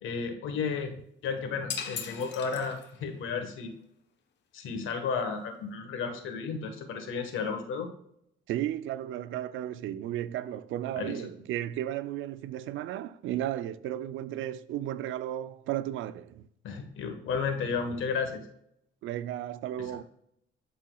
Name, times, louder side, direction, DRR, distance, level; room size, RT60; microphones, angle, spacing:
voice 1, 0.0-0.9 1.2-3.7 4.5-7.9 11.0-11.1 16.6-18.4 19.8-19.9, left 5 dB, 80° left, 1.3 m, -33 dB
sound 1, 1.7-3.2, left 7 dB, 65° left, 1.0 m, -38 dB
voice 2, 8.5-16.4 19.0-20.0, right 12 dB, 80° right, 0.5 m, -34 dB
11.0 x 4.3 x 2.3 m
cardioid pair, 90°, 20 cm